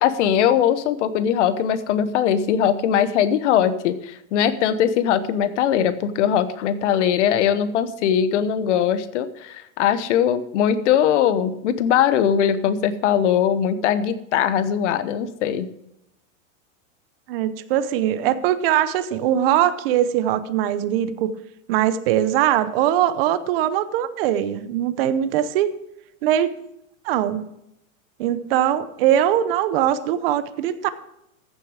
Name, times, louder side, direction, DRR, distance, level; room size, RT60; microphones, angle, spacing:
voice 1, 0.0-15.7, left 9 dB, 60° left, 13 dB, 1.0 m, -20 dB
voice 2, 17.3-21.3 21.7-25.7 26.2-26.5 27.0-27.4 28.2-30.9, right 11 dB, 45° right, 13 dB, 0.8 m, -21 dB
14.5 x 6.6 x 4.8 m, 0.82 s
supercardioid pair, 165°, 40 cm